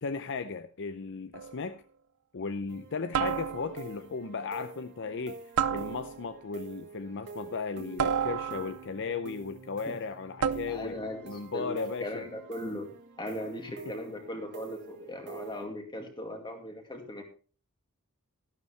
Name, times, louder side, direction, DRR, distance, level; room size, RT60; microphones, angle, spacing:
voice 1, 0.0-1.8 2.3-5.4 5.7-11.0 11.3-12.2, left 4 dB, 55° left, 0.6 m, -36 dB
sound 1, 1.3-1.7 3.1-3.9 5.6-6.4 8.0-8.9 10.4-11.0, right 7 dB, 85° right, 0.7 m, -31 dB
sound 2, 2.7-15.7, right 3 dB, 55° right, 1.8 m, -47 dB
voice 2, 10.7-12.9 13.2-17.2, left 1 dB, 20° left, 2.2 m, -39 dB
12.5 x 12.0 x 3.3 m
head